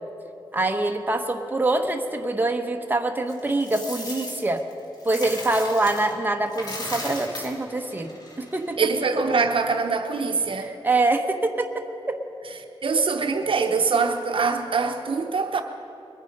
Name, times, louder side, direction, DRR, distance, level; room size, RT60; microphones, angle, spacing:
voice 1, 0.5-4.6 5.0-8.9 10.6-12.2, right 2 dB, 20° right, 4 dB, 1.0 m, -25 dB
Coin (dropping), 3.3-6.1 6.5-8.7, left 1 dB, 45° left, 2.5 m, -36 dB
voice 2, 8.8-10.8 12.8-15.6, right 4 dB, 65° right, 4 dB, 0.8 m, -23 dB
21.5 x 9.1 x 5.3 m, 2.9 s
wide cardioid pair, 85°, 9 cm